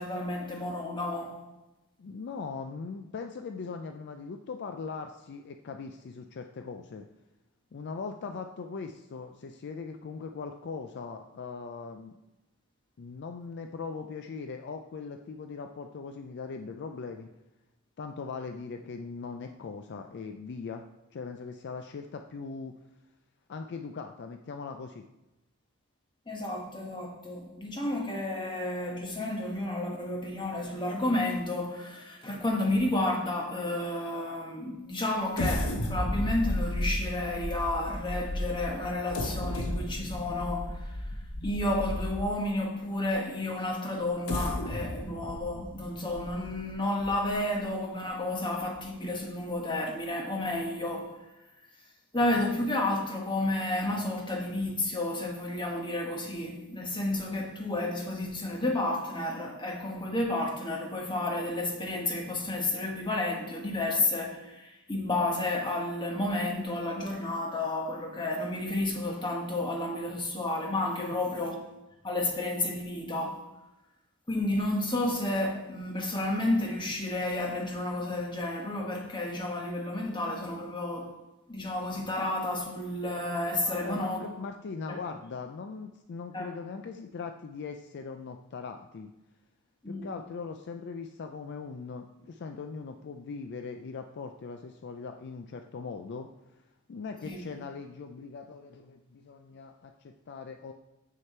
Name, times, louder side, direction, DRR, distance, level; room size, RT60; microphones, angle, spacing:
voice 1, 0.0-1.4 26.3-40.9 41.4-51.2 52.1-71.6 72.0-73.4 74.3-81.2 81.5-84.3 84.9-85.0 86.3-86.5 89.8-90.1 97.2-97.5, left 1 dB, 20° left, 1.3 m, -31 dB
voice 2, 2.0-7.1 7.7-12.2 13.0-17.3 18.0-20.8 21.1-22.7 23.5-25.0 71.0-71.2 83.7-89.1 89.9-96.3 96.9-100.7, left 4 dB, 50° left, 0.4 m, -40 dB
sound 1, 35.3-42.5 43.1-43.2 44.0-47.6 48.0-48.1 48.6-48.8, left 1 dB, 75° left, 1.0 m, -33 dB
7.6 x 6.5 x 4.3 m
head